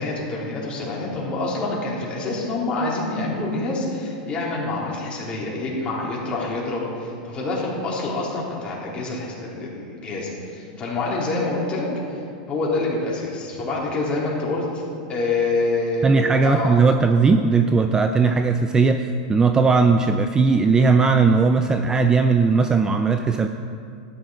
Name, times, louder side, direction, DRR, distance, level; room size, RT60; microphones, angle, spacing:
voice 1, 0.0-12.2 12.5-14.8 15.1-16.7, left 2 dB, 25° left, -5 dB, 3.5 m, -26 dB
voice 2, 16.0-23.5, right 4 dB, 15° right, 8 dB, 0.4 m, -18 dB
12.5 x 10.0 x 4.6 m, 2.4 s
hypercardioid pair, 120°, 4 cm